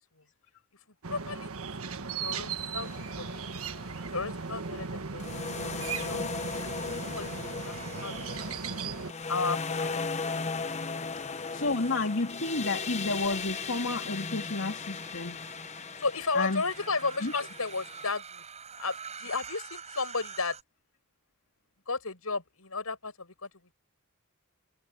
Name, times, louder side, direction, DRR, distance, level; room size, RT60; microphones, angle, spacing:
sound 1, 1.0-9.1, right 5 dB, 85° right, 1.4 m, -37 dB
voice 1, 1.1-1.7 2.2-3.4 4.1-5.3 5.9-6.2 6.6-7.7 8.0-8.4 9.3-10.4 10.9-11.0 16.0-18.4 18.8-20.6 21.9-23.5, left 4 dB, 85° left, 6.7 m, -34 dB
sound 2, 2.8-4.3 5.2-18.1, left 4 dB, 30° left, 1.0 m, -37 dB
sound 3, 6.0-9.4 10.0-10.5 11.2-20.6, right 6 dB, 30° right, 6.4 m, -48 dB
voice 2, 11.5-15.4 16.3-16.6 17.2-17.5, left 3 dB, 65° left, 2.6 m, -31 dB
head